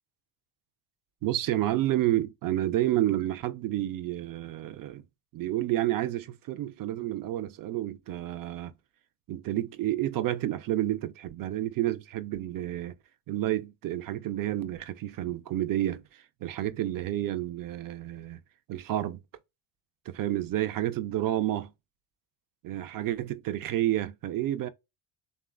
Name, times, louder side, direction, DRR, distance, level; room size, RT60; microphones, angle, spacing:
voice 1, 1.2-5.0 5.3-8.7 9.3-13.0 13.3-16.0 16.4-18.4 18.7-19.2 20.1-21.7 22.6-24.7, right 13 dB, 50° right, 0.5 m, -30 dB
3.1 x 2.1 x 2.4 m
supercardioid pair, 75°, 44 cm